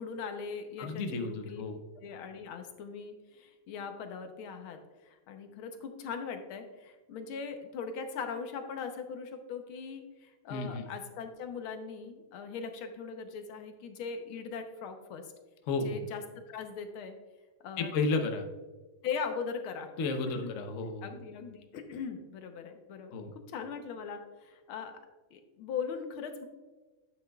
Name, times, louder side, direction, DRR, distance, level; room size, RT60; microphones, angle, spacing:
voice 1, 0.0-1.6 2.0-15.3 15.8-16.2 16.5-17.2 17.6-17.9 19.0-19.9 20.4-20.5 21.0-23.1 23.5-24.9 25.3-26.5, left 6 dB, 80° left, 6 dB, 1.7 m, -40 dB
voice 2, 0.8-1.8 10.5-10.9 15.7-16.0 17.8-18.5 20.0-21.1 23.1-23.3, left 3 dB, 55° left, 5 dB, 0.9 m, -32 dB
11.0 x 8.7 x 2.3 m, 1.2 s
omnidirectional pair, 2.3 m